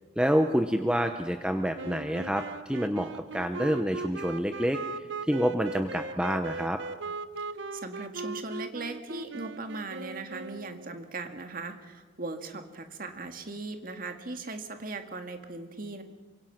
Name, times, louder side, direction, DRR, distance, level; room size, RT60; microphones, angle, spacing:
voice 1, 0.2-4.8 5.3-6.8, equal, 5° right, 6 dB, 0.8 m, -27 dB
sound 1, 1.8-10.9, right 3 dB, 65° right, 0.7 m, -39 dB
voice 2, 7.7-16.0, right 3 dB, 45° right, 6 dB, 1.9 m, -38 dB
27.0 x 24.5 x 5.9 m, 1.4 s
head